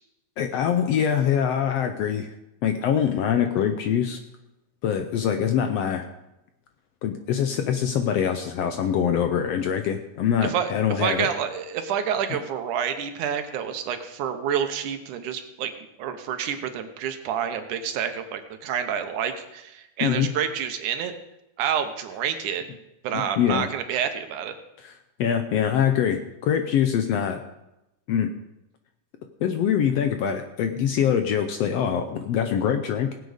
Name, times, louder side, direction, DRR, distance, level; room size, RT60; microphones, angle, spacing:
voice 1, 0.4-2.3 2.6-4.2 4.8-6.0 7.0-11.3 20.0-20.3 23.1-23.7 24.8-24.9 25.2-27.4 28.1-28.3 29.4-33.1, left 8 dB, 75° left, 7 dB, 1.5 m, -24 dB
voice 2, 10.4-15.7 16.0-21.1 21.6-22.6 23.0-24.6, right 8 dB, 80° right, 7 dB, 2.6 m, -28 dB
19.0 x 7.9 x 5.0 m, 0.91 s
omnidirectional pair, 3.5 m